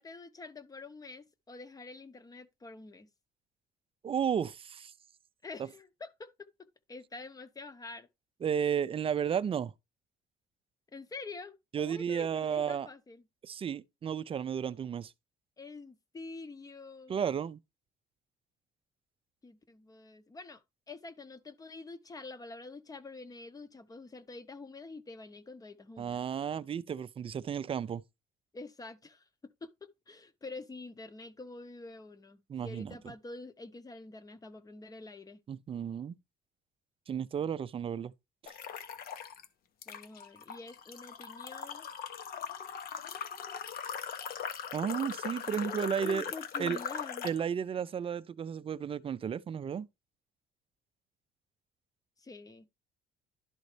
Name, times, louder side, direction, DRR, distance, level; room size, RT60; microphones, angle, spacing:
voice 1, 0.0-3.1 5.4-6.5 6.9-8.1 10.9-13.2 15.6-17.2 19.4-20.6 20.9-26.2 28.5-29.3 29.6-29.7 30.1-35.4 39.9-41.9 45.4-47.3 52.2-52.7, left 3 dB, 20° left, 0.8 m, -47 dB
voice 2, 4.0-4.9 8.4-9.7 11.7-12.9 13.4-15.1 17.1-17.6 26.0-28.0 32.5-33.0 35.5-36.2 37.1-38.1 38.4-38.5 44.7-46.3 46.6-46.8 47.2-49.9, right 8 dB, 35° right, 0.4 m, -33 dB
sound 1, 38.5-39.5 39.8-47.4, left 8 dB, 60° left, 1.0 m, -40 dB
12.0 x 4.0 x 3.3 m
cardioid pair, 110°, 17 cm